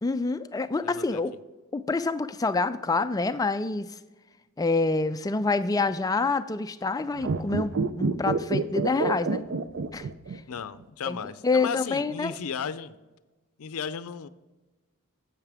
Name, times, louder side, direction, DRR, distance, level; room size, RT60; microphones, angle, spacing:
voice 1, 0.0-1.3 1.7-4.0 4.6-9.4 9.9-10.1 11.1-11.2 11.4-12.3, left 3 dB, 15° left, 11 dB, 0.3 m, -27 dB
voice 2, 0.8-1.2 10.5-13.0 13.6-14.3, left 7 dB, 75° left, 15 dB, 0.5 m, -35 dB
sound 1, 7.2-10.6 10.8-10.9, right 4 dB, 55° right, 0.4 m, -28 dB
10.5 x 8.0 x 3.5 m, 1.1 s
head